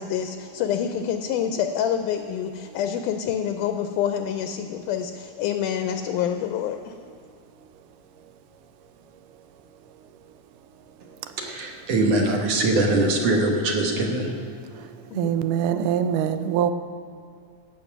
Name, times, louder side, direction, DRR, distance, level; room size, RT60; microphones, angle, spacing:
voice 1, 0.0-6.9 15.1-15.3, left 9 dB, 80° left, 6 dB, 2.0 m, -27 dB
voice 2, 11.4-14.3, right 2 dB, 60° right, 1 dB, 2.0 m, -22 dB
voice 3, 15.2-16.7, right 9 dB, 80° right, 10 dB, 2.1 m, -23 dB
16.0 x 7.2 x 5.9 m, 2.2 s
omnidirectional pair, 3.8 m